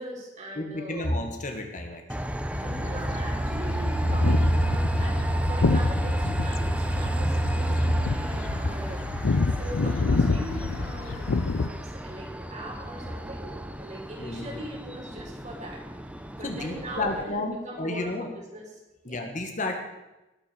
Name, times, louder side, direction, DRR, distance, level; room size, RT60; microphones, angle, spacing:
voice 1, 0.0-1.1 2.6-9.0 9.5-15.8 16.3-18.7 19.1-19.2, equal, 40° right, -2 dB, 4.7 m, -40 dB
voice 2, 0.6-2.0 7.0-7.2 14.2-14.7 16.4-18.3 19.1-19.8, left 2 dB, 40° left, 4 dB, 1.8 m, -31 dB
Train, 2.1-17.2, right 1 dB, 5° right, 0.9 m, -30 dB
sound 1, 2.5-11.7, left 3 dB, 80° left, 0.6 m, -28 dB
20.0 x 6.8 x 7.1 m, 1.0 s
head